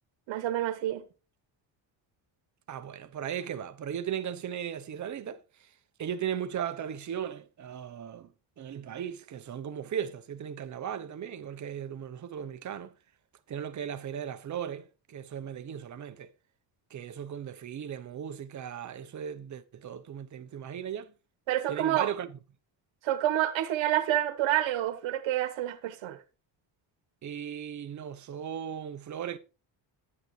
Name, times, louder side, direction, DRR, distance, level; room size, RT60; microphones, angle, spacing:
voice 1, 0.3-1.0 21.5-22.1 23.0-26.2, right 13 dB, 80° right, 1.3 m, -28 dB
voice 2, 2.7-5.7 6.0-8.3 8.6-12.9 13.5-16.3 16.9-21.1 21.7-22.4 27.2-29.4, right 9 dB, 40° right, 0.9 m, -37 dB
11.5 x 9.8 x 3.2 m
cardioid pair, 160°, 45 cm